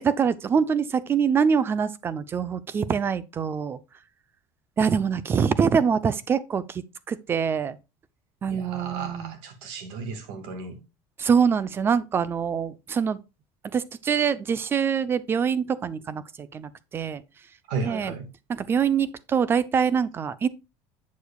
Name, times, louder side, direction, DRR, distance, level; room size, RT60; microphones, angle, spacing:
voice 1, 0.0-3.8 4.8-7.8 8.4-9.3 11.2-13.2 13.7-17.2 17.8-18.1 18.5-20.5, right 6 dB, 25° right, 0.5 m, -24 dB
voice 2, 8.5-10.8 17.7-18.3, right 4 dB, 75° right, 2.1 m, -34 dB
8.3 x 6.9 x 2.3 m
cardioid pair, 150°, 10 cm